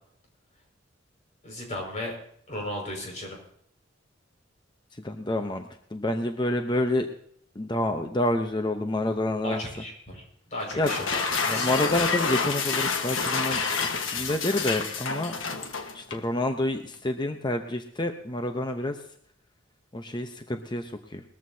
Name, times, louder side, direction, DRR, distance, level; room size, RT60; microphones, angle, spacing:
voice 1, 1.4-2.1 2.5-3.4 9.4-10.2 10.5-11.7, left 1 dB, 40° left, 0 dB, 5.6 m, -35 dB
voice 2, 4.9-7.1 7.6-9.6 10.8-10.9 11.5-15.4 15.9-19.0 19.9-21.2, left 1 dB, 25° left, 6 dB, 0.8 m, -28 dB
sound 1, 10.7-16.3, left 5 dB, 85° left, 1.4 m, -28 dB
20.5 x 14.0 x 2.8 m, 0.66 s
head